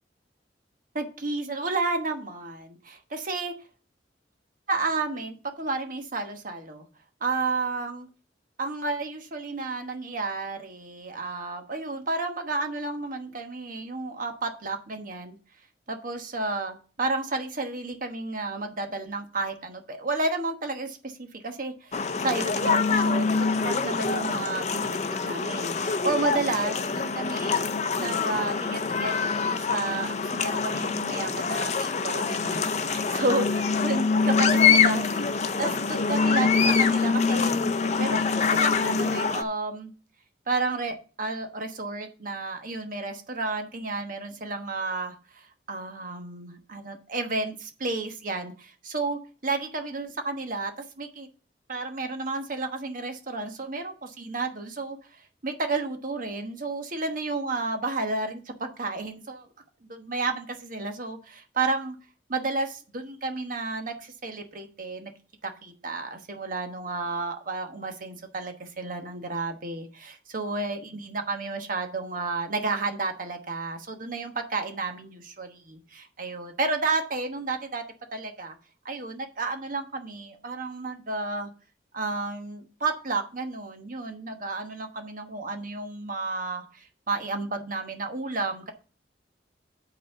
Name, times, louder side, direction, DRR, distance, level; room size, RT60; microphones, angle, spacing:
voice 1, 0.9-3.5 4.7-6.8 7.2-8.1 8.6-15.4 15.9-27.6 28.0-37.5 38.0-38.2 38.5-39.9 40.5-51.3 51.7-59.5 60.0-62.0 62.3-65.1 65.4-77.8 78.1-78.6 78.8-81.5 81.9-88.7, right 3 dB, 50° right, 6 dB, 1.2 m, -32 dB
sound 1, 21.9-39.4, left 5 dB, 40° left, 0.6 m, -25 dB
8.4 x 4.1 x 6.7 m, 0.37 s
head